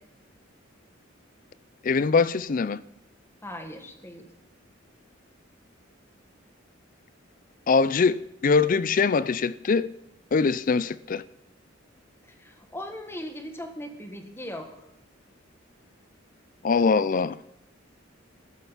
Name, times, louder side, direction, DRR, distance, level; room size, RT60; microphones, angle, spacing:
voice 1, 1.8-2.8 7.7-9.9 10.3-11.2 16.6-17.4, left 4 dB, 45° left, 0.4 m, -22 dB
voice 2, 3.4-4.3 12.4-14.7, left 1 dB, 15° left, 1.7 m, -38 dB
14.5 x 12.5 x 5.8 m
head